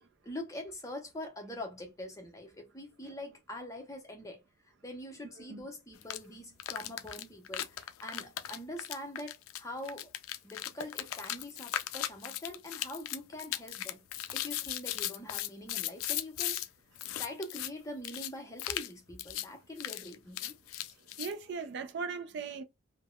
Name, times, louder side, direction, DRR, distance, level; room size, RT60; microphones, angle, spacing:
voice 1, 0.0-4.4 4.8-10.1 10.4-14.0 14.3-16.6 17.2-20.5, left 1 dB, 15° left, 0.7 m, -44 dB
sound 1, 6.0-6.2 6.6-16.7 17.0-17.7 18.0-18.3 18.6-18.9 19.2-19.5 19.8-21.3, left 13 dB, 80° left, 0.3 m, -37 dB
voice 2, 21.2-22.6, right 5 dB, 55° right, 0.4 m, -38 dB
3.4 x 2.1 x 2.2 m
head